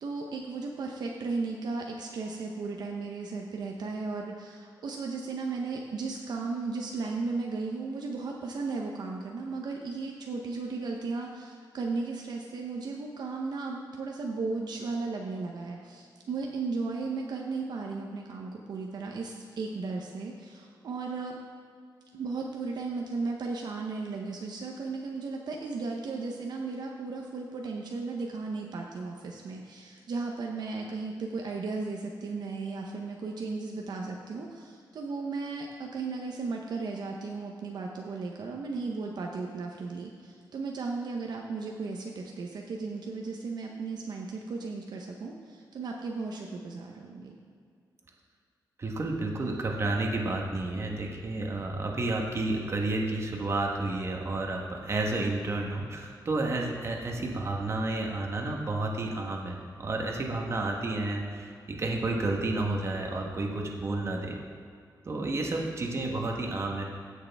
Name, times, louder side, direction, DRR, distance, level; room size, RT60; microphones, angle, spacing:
voice 1, 0.0-21.4 22.1-47.4, right 4 dB, 65° right, 0 dB, 0.9 m, -35 dB
voice 2, 48.8-64.4 65.0-66.8, right 2 dB, 35° right, 1 dB, 1.3 m, -31 dB
15.5 x 6.6 x 3.5 m, 2.3 s
wide cardioid pair, 145°, 8 cm